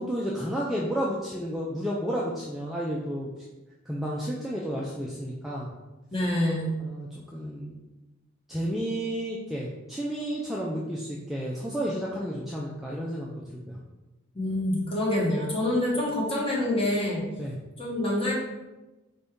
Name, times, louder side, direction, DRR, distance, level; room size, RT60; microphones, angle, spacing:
voice 1, 0.0-3.3 3.9-5.7 6.8-7.7 8.5-13.3 13.7-13.8 17.4-17.6, equal, ahead, -5 dB, 0.3 m, -31 dB
voice 2, 6.1-6.7 14.3-17.2 17.8-18.3, left 1 dB, 25° left, -4 dB, 1.1 m, -26 dB
4.5 x 2.6 x 3.5 m, 1.1 s
head